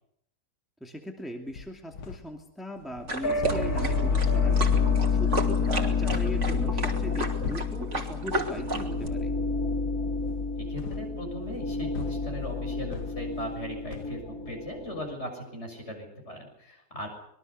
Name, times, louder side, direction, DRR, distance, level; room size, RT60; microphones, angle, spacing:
voice 1, 0.8-4.7 5.1-9.3, equal, ahead, 2 dB, 2.5 m, -39 dB
sound 1, 1.5-2.4 2.8-6.4 6.8-7.9 8.2-8.6 8.9-9.3 10.2-13.6 13.9-14.2, left 6 dB, 90° left, 1.8 m, -41 dB
sound 2, 3.1-9.1, right 2 dB, 45° right, 3.2 m, -32 dB
sound 3, 3.2-15.1, left 5 dB, 65° left, 2.4 m, -28 dB
voice 2, 10.5-17.1, equal, 40° left, 3 dB, 7.1 m, -38 dB
25.5 x 22.0 x 6.8 m, 0.74 s
omnidirectional pair, 1.7 m